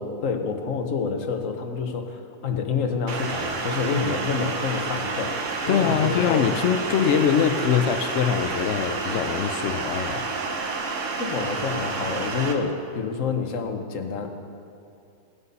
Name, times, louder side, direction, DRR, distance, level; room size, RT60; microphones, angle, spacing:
voice 1, 0.0-5.3 5.6-6.5 11.2-14.3, left 5 dB, 50° left, 5 dB, 1.2 m, -28 dB
sound 1, 3.1-12.5, right 4 dB, 50° right, 1.2 m, -29 dB
voice 2, 5.7-10.3, left 8 dB, 80° left, 8 dB, 0.6 m, -23 dB
18.0 x 8.2 x 5.4 m, 2.6 s
omnidirectional pair, 1.9 m